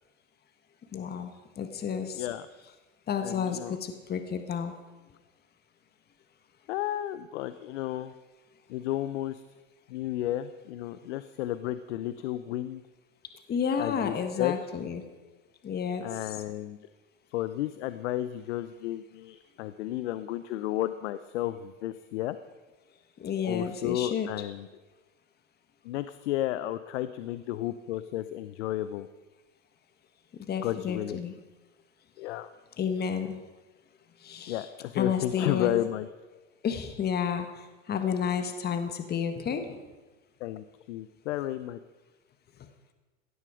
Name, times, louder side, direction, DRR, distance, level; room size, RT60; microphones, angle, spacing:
voice 1, 0.9-2.3 3.1-4.7 13.5-15.0 15.6-16.4 23.2-24.3 30.3-31.4 32.8-33.4 34.2-34.7 34.9-35.8 36.6-39.8, left 7 dB, 25° left, 8 dB, 1.5 m, -31 dB
voice 2, 3.2-3.8 6.7-8.1 8.7-9.4 9.9-12.8 13.8-14.6 16.0-16.8 17.3-22.4 23.4-24.7 25.8-29.1 30.6-31.2 32.2-32.5 34.5-36.1 40.4-41.8, left 14 dB, 65° left, 13 dB, 0.8 m, -32 dB
18.0 x 13.5 x 5.0 m, 1.2 s
hypercardioid pair, 105°, 38 cm